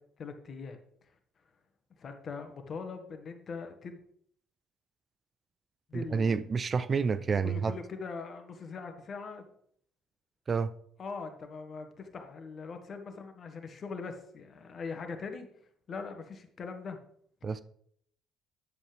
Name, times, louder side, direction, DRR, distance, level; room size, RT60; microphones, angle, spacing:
voice 1, 0.2-0.8 2.0-4.0 5.9-6.5 7.2-9.4 11.0-15.5 15.9-17.0, left 4 dB, 50° left, 1.5 m, -41 dB
voice 2, 5.9-7.8 10.5-10.7 17.4-17.6, right 5 dB, 40° right, 0.5 m, -29 dB
9.7 x 7.7 x 3.4 m
hypercardioid pair, 55°, 0 cm